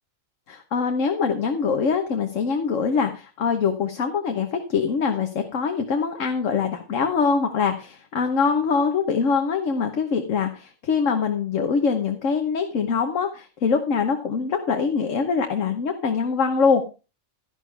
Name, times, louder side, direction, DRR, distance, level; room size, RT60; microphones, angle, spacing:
voice 1, 0.5-16.8, left 5 dB, 75° left, 5 dB, 1.4 m, -23 dB
12.0 x 11.0 x 3.3 m, 0.31 s
omnidirectional pair, 1.3 m